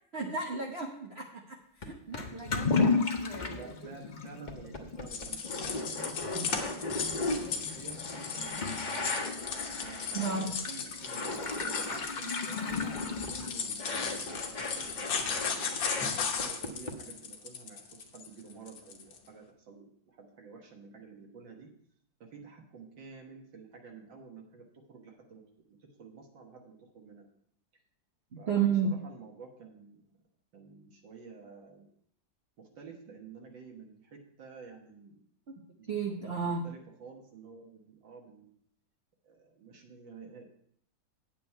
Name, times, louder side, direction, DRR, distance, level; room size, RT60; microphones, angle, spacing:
voice 1, 0.1-3.7 6.3-6.5 10.1-10.6 28.3-29.0 35.9-36.7, right 5 dB, 45° right, 0 dB, 1.0 m, -33 dB
sound 1, 1.8-1.9 2.1-2.2 2.7-3.2 3.8-3.9 4.5-10.7 11.0-12.1 12.7-16.1 16.4-16.9, left 2 dB, 30° left, 1.0 m, -38 dB
Toilet flush / Liquid, 2.2-13.8, left 4 dB, 55° left, 0.5 m, -35 dB
voice 2, 3.4-8.7 9.8-14.3 14.6-15.5 16.0-21.7 22.2-25.4 25.7-27.3 28.4-30.0 30.5-31.9 32.6-35.2 35.8-36.0 36.4-38.5 39.2-40.5, right 5 dB, 75° right, 1 dB, 2.1 m, -50 dB
sound 2, 5.1-19.2, left 6 dB, 90° left, 1.9 m, -36 dB
8.9 x 8.4 x 4.4 m, 0.66 s
omnidirectional pair, 2.0 m